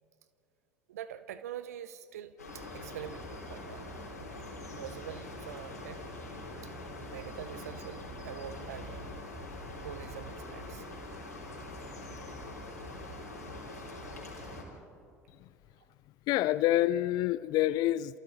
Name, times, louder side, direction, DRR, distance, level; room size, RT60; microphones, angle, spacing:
voice 1, 0.9-3.9 4.7-6.0 6.6-6.7 7.1-9.2 9.8-10.9, right 10 dB, 75° right, 14 dB, 0.8 m, -44 dB
sound 1, 2.4-14.6, left 1 dB, 85° left, 3.8 m, -43 dB
voice 2, 16.3-18.2, left 14 dB, 50° left, 18 dB, 0.5 m, -27 dB
29.0 x 28.0 x 4.2 m, 2.4 s
figure-of-eight pair, 70°, 8 cm